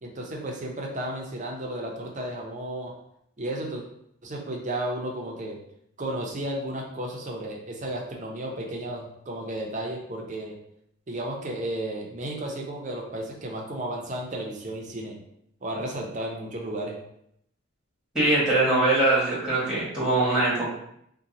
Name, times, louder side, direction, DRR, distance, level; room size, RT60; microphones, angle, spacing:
voice 1, 0.0-2.9 3.4-3.8 4.2-5.6 6.0-10.6 11.1-15.2 15.6-17.0, right 1 dB, 35° right, 0 dB, 0.6 m, -33 dB
voice 2, 18.1-20.7, right 2 dB, 5° right, -8 dB, 1.2 m, -22 dB
2.8 x 2.2 x 3.9 m, 0.72 s
head